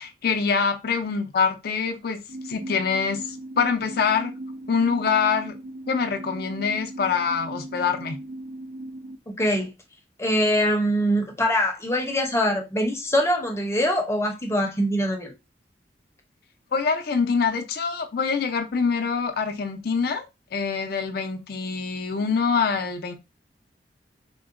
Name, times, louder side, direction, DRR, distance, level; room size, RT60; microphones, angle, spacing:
voice 1, 0.0-2.2 2.5-4.3 4.7-5.5 5.9-8.2 16.7-20.2 20.5-23.1, left 5 dB, 60° left, 0.5 m, -25 dB
sound 1, 2.3-9.2, right 1 dB, 60° right, 0.4 m, -38 dB
voice 2, 9.3-9.7 10.2-15.3, equal, 15° left, 0.6 m, -23 dB
3.6 x 2.1 x 2.4 m
head